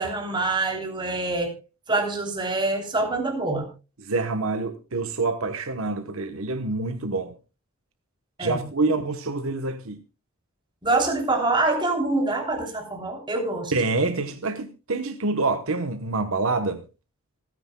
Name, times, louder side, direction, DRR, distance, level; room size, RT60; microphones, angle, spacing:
voice 1, 0.0-1.5 1.9-3.7 8.4-8.6 10.8-13.7, right 2 dB, 20° right, 3.2 m, -25 dB
voice 2, 4.0-7.3 8.4-10.0 13.7-16.8, right 3 dB, 70° right, 1.1 m, -26 dB
26.0 x 9.7 x 2.3 m
head